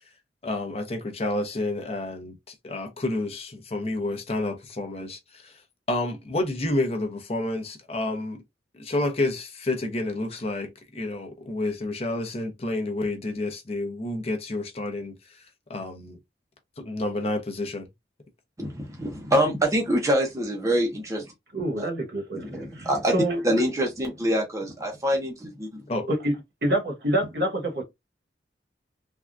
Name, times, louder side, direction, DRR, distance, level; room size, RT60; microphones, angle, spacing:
voice 1, 0.4-5.5 5.9-8.4 8.8-15.4 15.7-16.2 16.8-17.9 25.9-26.1, left 2 dB, 35° left, 0.6 m, -29 dB
voice 2, 18.6-21.3 21.8-21.9 22.3-23.1 23.4-25.8, equal, 15° right, 0.6 m, -25 dB
voice 3, 21.5-23.4 26.1-26.3 26.6-27.8, right 1 dB, 65° right, 1.2 m, -27 dB
3.5 x 2.3 x 2.4 m
head